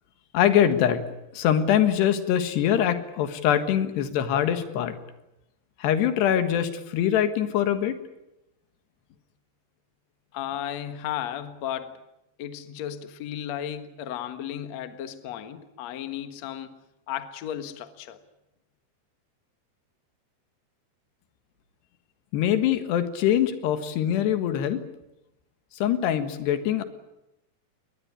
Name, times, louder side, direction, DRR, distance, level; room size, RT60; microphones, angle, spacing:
voice 1, 0.3-1.0 1.3-5.0 5.8-8.0 22.3-24.8 25.8-26.8, left 10 dB, 80° left, 3.6 m, -23 dB
voice 2, 10.3-12.0 12.4-16.8 17.1-18.2, left 10 dB, 55° left, 2.1 m, -34 dB
22.0 x 20.0 x 10.0 m
omnidirectional pair, 4.8 m